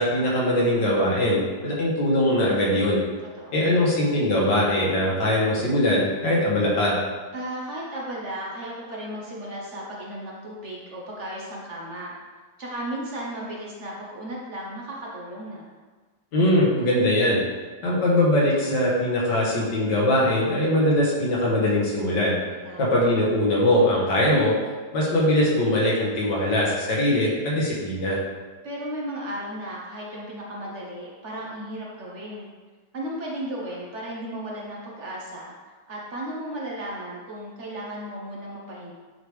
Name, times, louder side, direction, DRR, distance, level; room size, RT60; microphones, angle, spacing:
voice 1, 0.0-3.0 3.5-7.0 16.3-17.4 17.8-22.4 22.8-24.5 24.9-28.2, left 1 dB, 85° left, -5 dB, 2.0 m, -21 dB
voice 2, 3.4-3.7 7.3-12.1 12.6-15.7 22.6-23.0 28.6-32.5 32.9-35.5 35.9-38.9, right 1 dB, 50° right, -4 dB, 1.1 m, -35 dB
8.7 x 3.5 x 3.2 m, 1.4 s
omnidirectional pair, 1.8 m